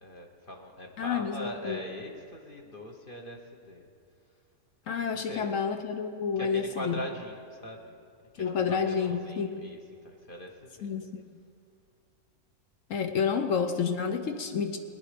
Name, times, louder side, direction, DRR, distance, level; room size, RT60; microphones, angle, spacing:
voice 1, 0.0-3.9 5.0-5.6 6.4-8.0 8.4-10.9 13.3-13.5, equal, 40° left, 1 dB, 1.2 m, -41 dB
voice 2, 1.0-1.8 4.9-7.0 8.4-9.7 10.8-11.2 12.9-14.8, left 6 dB, 65° left, 7 dB, 1.0 m, -30 dB
20.0 x 10.0 x 5.0 m, 2.3 s
omnidirectional pair, 1.6 m